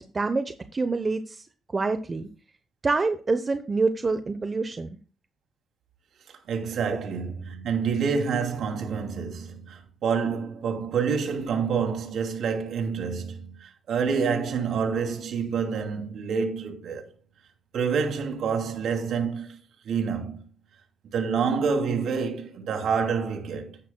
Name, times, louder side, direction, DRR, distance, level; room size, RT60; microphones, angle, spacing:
voice 1, 0.0-1.4 1.7-2.3 2.8-4.9, right 3 dB, 30° right, 0.8 m, -26 dB
voice 2, 6.5-17.0 17.7-19.6 19.8-20.4 21.1-23.8, right 6 dB, 70° right, 2.6 m, -27 dB
11.5 x 10.0 x 2.3 m
cardioid pair, 90°, 0 cm